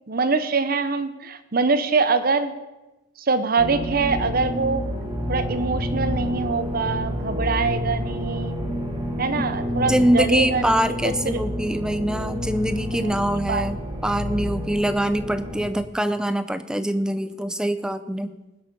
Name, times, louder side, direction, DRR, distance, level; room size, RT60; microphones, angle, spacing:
voice 1, 0.1-2.5 3.2-4.8 5.3-8.6 9.2-10.6 11.3-11.4 13.0-13.2 13.5-13.7, right 4 dB, 45° right, 11 dB, 0.8 m, -24 dB
sound 1, 3.6-15.7, equal, 20° right, 1.6 m, -29 dB
voice 2, 9.9-18.3, right 1 dB, 5° right, 11 dB, 0.5 m, -24 dB
19.5 x 8.1 x 5.4 m, 1.1 s
head